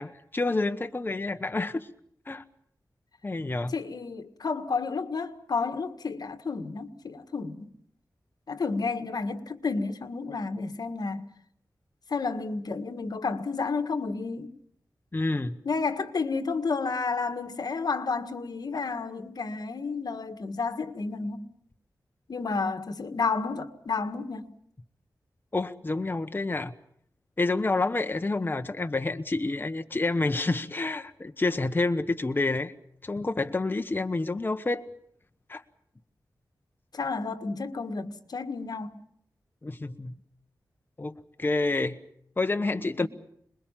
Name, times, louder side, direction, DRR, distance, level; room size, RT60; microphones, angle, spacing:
voice 1, 0.0-1.9 2.3-2.4 3.2-3.7 15.1-15.6 25.5-26.7 27.4-32.7 33.0-34.8 35.5-35.6 39.6-40.1 41.0-42.0 42.4-43.1, left 2 dB, 30° left, 1.1 m, -28 dB
voice 2, 3.7-7.7 8.5-11.3 12.1-14.6 15.6-21.5 22.3-24.6 36.9-39.0 43.0-43.1, left 4 dB, 70° left, 1.7 m, -31 dB
27.0 x 21.5 x 7.4 m
wide cardioid pair, 90°, 7 cm